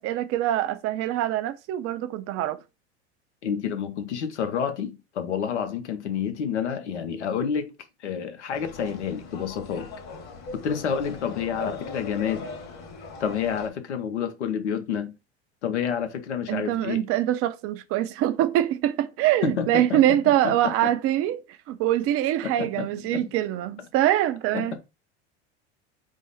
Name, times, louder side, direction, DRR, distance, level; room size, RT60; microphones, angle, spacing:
voice 1, 0.0-2.6 16.5-24.8, right 13 dB, 45° right, 0.5 m, -24 dB
voice 2, 3.4-7.7 8.0-9.9 10.5-12.5 13.2-15.1 15.6-17.0 19.4-20.0 20.4-20.9 22.4-23.3 24.5-24.7, left 7 dB, 85° left, 0.8 m, -29 dB
sound 1, 8.5-13.7, left 3 dB, 50° left, 1.5 m, -39 dB
4.9 x 2.0 x 4.0 m
hypercardioid pair, 85°, 34 cm